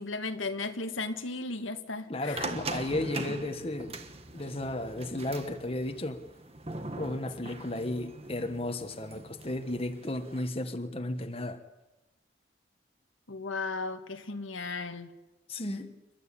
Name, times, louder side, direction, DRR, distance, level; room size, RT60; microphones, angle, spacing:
voice 1, 0.0-2.5 7.4-7.5 13.3-15.1, left 3 dB, 90° left, 7 dB, 1.7 m, -35 dB
voice 2, 2.1-4.0 4.3-6.2 6.9-11.6 15.5-15.9, left 1 dB, 30° left, 7 dB, 1.3 m, -34 dB
sound 1, 2.4-10.5, right 2 dB, 30° right, 1.5 m, -41 dB
29.0 x 12.0 x 8.5 m, 1.1 s
head